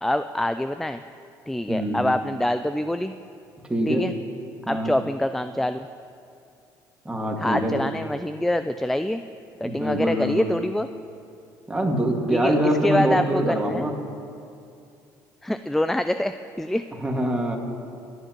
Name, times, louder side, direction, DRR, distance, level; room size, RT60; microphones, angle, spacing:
voice 1, 0.0-1.0 1.5-3.1 3.9-4.1 4.7-5.9 7.4-9.2 9.6-10.9 12.3-13.9 15.4-16.9, left 1 dB, 5° left, 10 dB, 0.3 m, -25 dB
voice 2, 1.7-2.1 3.7-4.1 4.7-4.9 7.1-7.8 9.6-10.5 11.7-13.9 17.0-17.6, right 1 dB, 10° right, 1 dB, 2.0 m, -24 dB
20.0 x 9.3 x 3.0 m, 2.5 s
supercardioid pair, 80°, 8 cm